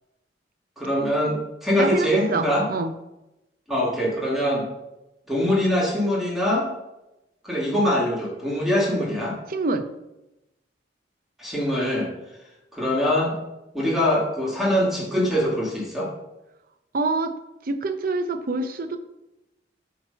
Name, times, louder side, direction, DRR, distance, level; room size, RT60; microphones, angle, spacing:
voice 1, 0.8-2.7 3.7-4.7 5.3-6.6 7.4-9.4 11.4-12.1 12.7-13.4 13.7-16.1, left 1 dB, ahead, -5 dB, 1.5 m, -23 dB
voice 2, 1.8-2.9 9.5-9.9 16.9-17.3 17.7-19.0, right 3 dB, 55° right, 8 dB, 0.6 m, -25 dB
8.7 x 3.0 x 5.5 m, 0.95 s
head